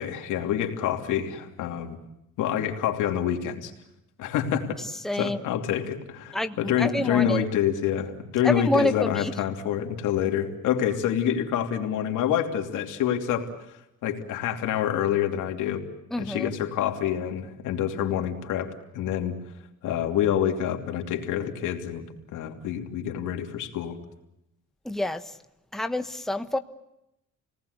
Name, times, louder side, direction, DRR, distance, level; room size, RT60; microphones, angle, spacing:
voice 1, 0.0-2.0 2.4-3.7 4.2-4.8 5.1-13.5 14.0-15.8 16.2-19.4 19.8-22.0 22.3-24.0, left 9 dB, 90° left, 4 dB, 3.0 m, -27 dB
voice 2, 5.0-5.4 6.3-7.4 8.4-8.9 9.2-9.3 16.1-16.5 24.8-25.2 25.7-26.6, left 1 dB, ahead, 8 dB, 1.3 m, -27 dB
28.5 x 19.0 x 8.2 m, 0.86 s
cardioid pair, 90°, 30 cm